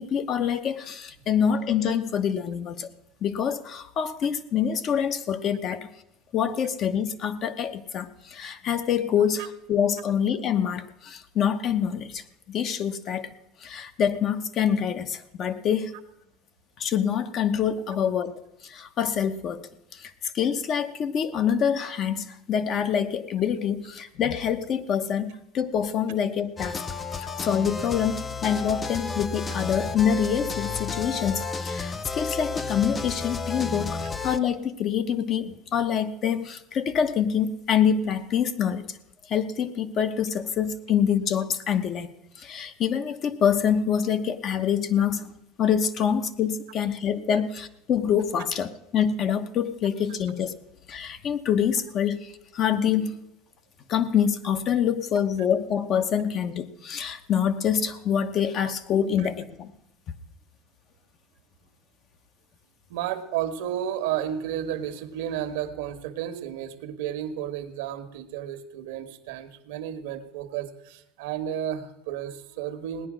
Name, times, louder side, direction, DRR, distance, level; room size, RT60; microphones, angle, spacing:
voice 1, 0.0-2.9 3.2-5.9 6.3-13.3 13.6-15.9 16.8-18.3 18.6-26.8 27.1-39.0 39.3-42.1 42.4-50.5 50.9-53.2 53.9-59.7, left 8 dB, 40° left, 10 dB, 1.0 m, -26 dB
sound 1, 26.6-34.4, left 4 dB, 20° left, 0.6 m, -32 dB
voice 2, 62.9-73.1, right 10 dB, 80° right, 9 dB, 1.4 m, -32 dB
18.0 x 9.8 x 6.2 m, 0.82 s
supercardioid pair, 130°, 0 cm